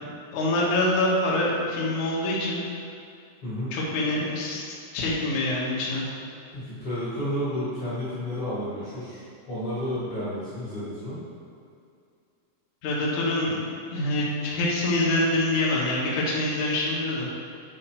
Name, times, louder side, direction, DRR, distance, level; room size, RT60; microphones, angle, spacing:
voice 1, 0.0-2.6 3.7-4.6 4.9-6.1 12.8-13.6 13.9-17.3, left 1 dB, 70° left, -5 dB, 1.8 m, -25 dB
voice 2, 3.4-3.7 6.5-11.2, equal, 55° left, -12 dB, 1.6 m, -31 dB
8.7 x 5.1 x 4.5 m, 2.5 s
omnidirectional pair, 5.4 m